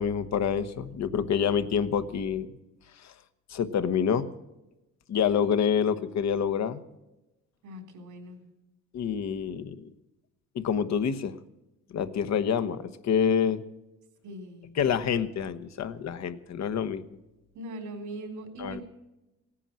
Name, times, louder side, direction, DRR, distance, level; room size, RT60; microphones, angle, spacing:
voice 1, 0.0-2.5 3.0-3.1 3.5-4.3 5.1-6.8 8.9-9.9 10.5-11.4 11.9-13.6 14.8-17.0 18.6-18.8, left 7 dB, 60° left, 12 dB, 1.1 m, -27 dB
voice 2, 7.6-8.4 14.2-14.7 17.5-18.8, right 1 dB, 80° right, 5 dB, 3.6 m, -40 dB
17.0 x 10.0 x 7.6 m, 0.99 s
cardioid pair, 90°, 30 cm